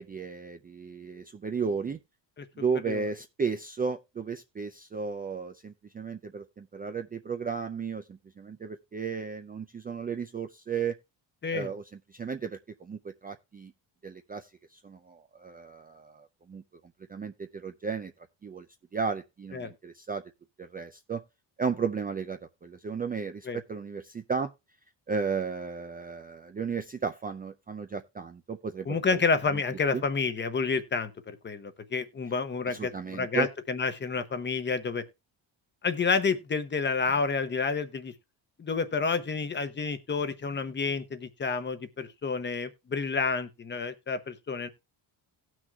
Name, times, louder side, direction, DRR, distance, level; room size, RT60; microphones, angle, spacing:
voice 1, 0.0-2.0 2.6-11.0 11.5-11.8 12.1-13.7 14.0-16.6 17.1-18.1 18.4-18.7 18.9-20.2 20.6-21.2 21.6-24.5 25.1-29.2 29.5-29.6 29.9-30.0 32.7-33.5, right 5 dB, 20° right, 0.4 m, -34 dB
voice 2, 28.9-35.0 35.8-38.1 38.6-44.7, left 4 dB, 25° left, 0.8 m, -29 dB
18.0 x 6.2 x 2.3 m
cardioid pair, 155°, 44 cm